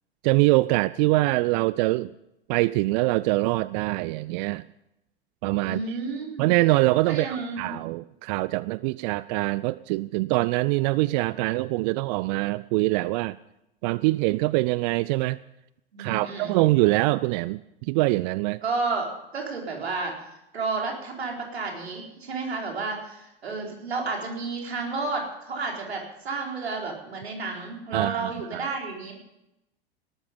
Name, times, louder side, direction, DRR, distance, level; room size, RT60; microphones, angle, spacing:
voice 1, 0.2-2.1 2.5-4.6 5.4-6.0 6.4-13.4 13.8-15.4 16.0-18.6 27.9-28.7, right 20 dB, 45° right, 19 dB, 0.5 m, -24 dB
voice 2, 5.6-6.5 7.1-7.7 15.9-16.6 18.6-19.1 19.3-20.1 20.5-29.2, right 4 dB, 80° right, 0 dB, 4.4 m, -31 dB
18.5 x 13.0 x 5.3 m, 0.88 s
figure-of-eight pair, 90°, 31 cm